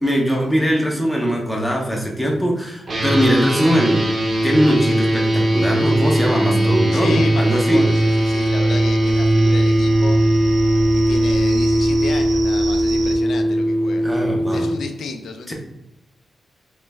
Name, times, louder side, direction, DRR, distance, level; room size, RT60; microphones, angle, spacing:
voice 1, 0.0-4.0 4.4-7.9 14.0-14.7 15.5-15.6, equal, 5° left, -1 dB, 0.6 m, -20 dB
sound 1, 2.9-14.8, right 1 dB, 35° right, 0.6 m, -19 dB
voice 2, 6.9-10.2 10.9-14.1 14.5-15.5, left 4 dB, 85° left, 5 dB, 0.5 m, -32 dB
sound 2, 7.7-13.2, right 2 dB, 75° right, 0.5 m, -32 dB
3.2 x 3.1 x 3.3 m, 0.86 s
wide cardioid pair, 175°, 0 cm